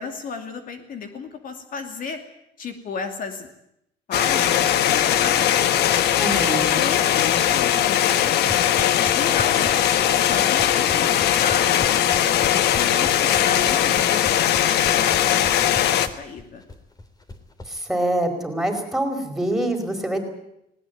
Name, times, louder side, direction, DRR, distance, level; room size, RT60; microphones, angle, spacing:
voice 1, 0.0-2.2 2.6-3.5 4.1-5.8 6.7-12.0 12.5-16.6, left 5 dB, 55° left, 6 dB, 2.6 m, -34 dB
sound 1, 4.1-16.1, left 11 dB, 75° left, 1.3 m, -20 dB
voice 2, 6.2-6.9 17.7-20.2, right 1 dB, ahead, 3 dB, 4.8 m, -25 dB
sound 2, 8.1-17.7, left 1 dB, 25° left, 3.3 m, -38 dB
19.5 x 18.5 x 9.3 m, 0.80 s
cardioid pair, 110°, 17 cm